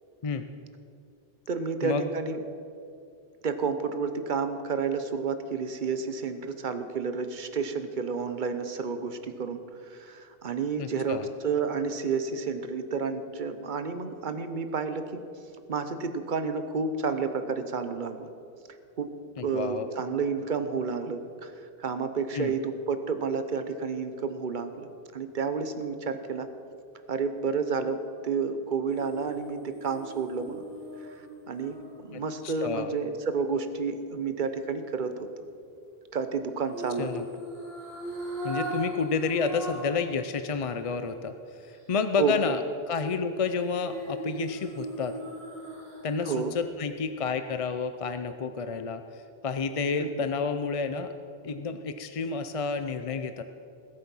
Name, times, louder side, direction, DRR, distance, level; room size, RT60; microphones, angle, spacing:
voice 1, 1.5-2.4 3.4-15.2 15.7-18.3 19.0-19.1 19.4-21.5 21.8-26.5 27.1-30.6 31.5-31.8 32.1-35.2 36.1-37.1 42.2-42.5 46.2-46.5 50.0-50.1, right 5 dB, 50° right, 9 dB, 1.0 m, -30 dB
voice 2, 10.8-11.3 19.4-20.0 22.3-22.5 32.1-32.9 37.0-37.2 38.4-41.3 41.6-42.6 42.9-45.2 46.0-51.1 51.4-53.4, left 5 dB, 40° left, 9 dB, 0.5 m, -30 dB
sound 1, 28.9-33.1 36.7-40.1 40.4-40.5 43.4-46.3 46.6-46.7, right 1 dB, 75° right, 2.6 m, -39 dB
20.5 x 8.5 x 5.5 m, 2.6 s
omnidirectional pair, 1.0 m